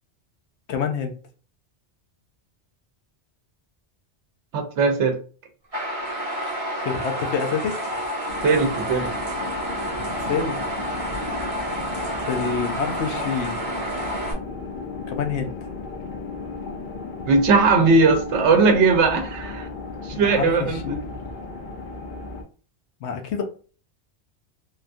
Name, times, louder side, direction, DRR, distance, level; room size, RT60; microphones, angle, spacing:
voice 1, 0.7-1.2 6.8-7.8 10.2-10.6 12.2-13.6 15.1-15.5 20.1-21.2 23.0-23.4, left 6 dB, 80° left, 6 dB, 0.9 m, -27 dB
voice 2, 4.5-5.2 8.4-9.1 17.3-19.7 20.0-21.0, right 4 dB, 85° right, 6 dB, 1.0 m, -19 dB
sound 1, 5.7-14.3, right 1 dB, 35° right, 1.0 m, -29 dB
sound 2, 8.3-22.4, left 4 dB, 50° left, 0.8 m, -35 dB
3.5 x 2.3 x 2.5 m, 0.38 s
omnidirectional pair, 1.2 m